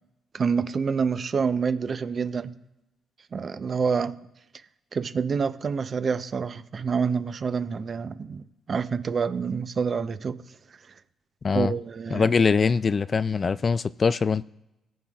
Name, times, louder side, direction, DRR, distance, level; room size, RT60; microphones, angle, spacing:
voice 1, 0.3-2.5 3.3-4.2 4.9-10.4 11.5-12.3, right 5 dB, 50° right, 0.7 m, -27 dB
voice 2, 12.1-14.4, left 5 dB, 40° left, 0.3 m, -22 dB
18.0 x 7.3 x 2.4 m
supercardioid pair, 65°, 0 cm